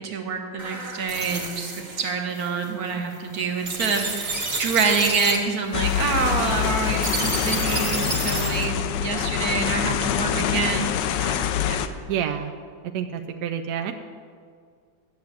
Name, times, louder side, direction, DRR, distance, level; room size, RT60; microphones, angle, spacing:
voice 1, 0.0-11.8, right 5 dB, 50° right, 4 dB, 1.5 m, -27 dB
sound 1, 0.6-8.7, right 2 dB, 25° right, 1.1 m, -31 dB
sound 2, 5.7-11.9, left 9 dB, 75° left, 1.1 m, -25 dB
voice 2, 12.1-12.5 12.9-13.9, right 9 dB, 75° right, 5 dB, 0.9 m, -28 dB
10.5 x 7.1 x 7.8 m, 2.1 s
omnidirectional pair, 2.3 m